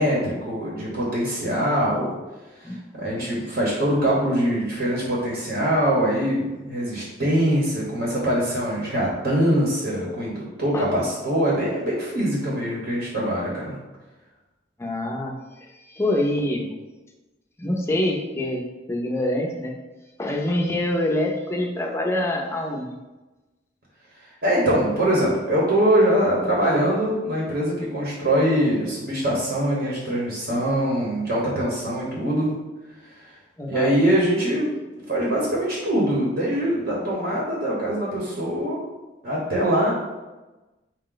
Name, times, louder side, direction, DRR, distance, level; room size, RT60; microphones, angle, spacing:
voice 1, 0.0-2.1 2.6-13.7 24.4-32.5 33.7-34.7 35.1-38.8 39.2-39.9, right 1 dB, 60° right, -5 dB, 0.9 m, -23 dB
voice 2, 14.8-16.7 17.6-19.7 20.2-23.0 33.6-33.9, left 1 dB, 15° left, 0 dB, 0.4 m, -26 dB
4.6 x 2.1 x 3.8 m, 1.1 s
head